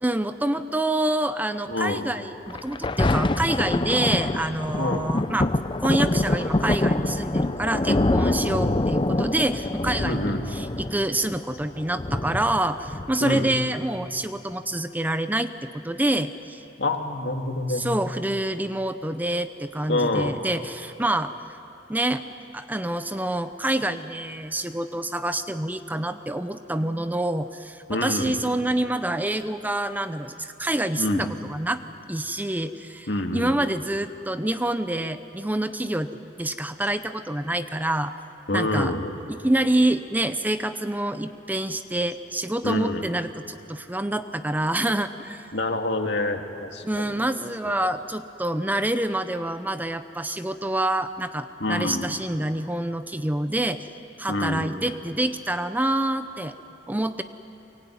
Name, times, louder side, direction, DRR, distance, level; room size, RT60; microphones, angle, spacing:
voice 1, 0.0-5.5 5.8-16.6 17.7-21.3 21.9-22.2 22.5-31.8 32.1-36.1 36.4-38.1 38.5-38.9 39.4-45.5 46.8-53.9 54.2-56.5 56.9-57.2, right 1 dB, 10° right, 10 dB, 0.6 m, -27 dB
voice 2, 1.7-2.1 4.8-5.1 10.0-10.4 13.2-13.5 16.8-17.8 19.9-20.3 27.9-28.4 31.0-31.3 33.1-33.7 38.5-39.1 42.6-43.0 45.5-47.2 51.6-52.1 54.3-54.8, left 2 dB, 70° left, 4 dB, 2.1 m, -27 dB
Thunder, 2.5-13.5 14.1-14.2, left 2 dB, 25° left, 0.6 m, -25 dB
24.0 x 22.5 x 9.6 m, 3.0 s
head